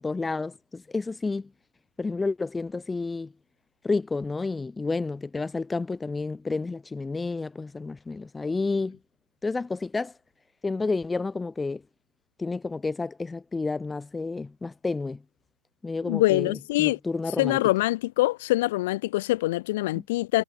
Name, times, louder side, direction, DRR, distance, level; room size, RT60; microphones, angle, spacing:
voice 1, 0.0-1.5 2.0-3.3 3.8-9.0 9.4-10.1 10.6-11.8 12.4-15.2 15.8-17.6 20.0-20.1, left 3 dB, 5° left, 4.1 m, -30 dB
voice 2, 16.0-17.0 17.4-20.4, left 18 dB, 45° left, 1.5 m, -24 dB
hypercardioid pair, 135°, 0 cm